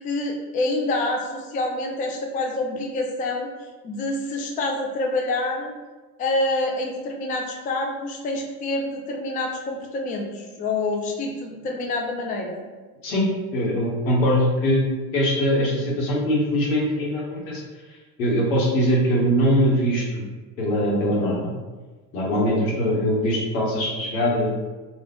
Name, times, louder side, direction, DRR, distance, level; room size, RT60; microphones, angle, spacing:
voice 1, 0.0-3.5 3.8-5.7 6.2-12.6 22.3-22.6, left 2 dB, 20° left, 1 dB, 0.3 m, -27 dB
voice 2, 13.5-14.8 15.1-17.6 18.2-20.2 20.6-21.5 22.1-24.5, equal, 85° left, -3 dB, 1.1 m, -22 dB
2.4 x 2.4 x 3.4 m, 1.3 s
hypercardioid pair, 80°, 50 cm